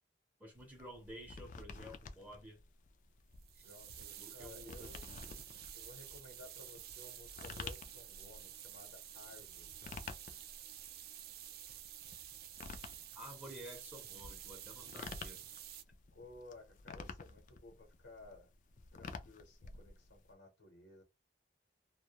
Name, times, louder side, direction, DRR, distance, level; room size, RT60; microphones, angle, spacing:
voice 1, 0.4-2.6 3.6-3.7 4.2-4.9 13.1-15.4, equal, 10° right, 0.6 m, -52 dB
sound 1, 0.5-20.3, left 4 dB, 45° left, 0.3 m, -51 dB
sound 2, 3.4-15.8, right 11 dB, 55° right, 0.3 m, -51 dB
voice 2, 3.6-5.1 5.7-9.8 16.1-18.5 18.9-21.0, left 2 dB, 90° left, 0.9 m, -56 dB
2.2 x 2.1 x 2.8 m
head